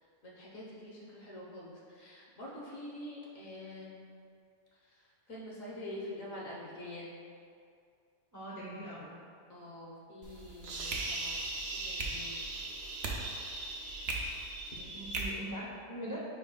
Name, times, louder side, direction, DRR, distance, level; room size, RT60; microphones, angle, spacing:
voice 1, 0.2-4.1 4.8-7.1 8.6-8.8 9.5-11.5 11.8-12.4 14.8-15.1, left 1 dB, 55° left, -5 dB, 1.5 m, -46 dB
voice 2, 8.3-9.1 14.9-16.2, right 1 dB, 25° right, -6 dB, 0.4 m, -42 dB
sound 1, 10.2-15.2, right 2 dB, 55° right, 0.9 m, -38 dB
9.1 x 4.4 x 2.3 m, 2.3 s
omnidirectional pair, 1.7 m